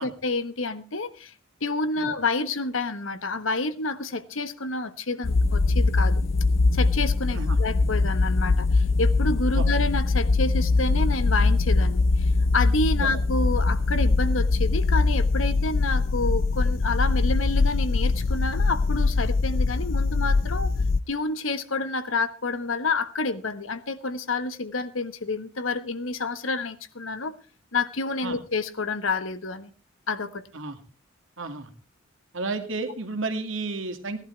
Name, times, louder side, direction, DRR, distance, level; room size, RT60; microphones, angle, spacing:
voice 1, 0.0-1.3 1.6-6.2 6.7-20.7 21.1-27.4 27.7-29.7 30.1-30.4, left 3 dB, 85° left, 11 dB, 1.3 m, -29 dB
sound 1, 5.2-21.0, left 3 dB, 70° left, 0.6 m, -22 dB
voice 2, 31.4-31.7 32.3-34.2, right 3 dB, 75° right, 6 dB, 2.3 m, -32 dB
17.5 x 11.5 x 4.5 m, 0.35 s
head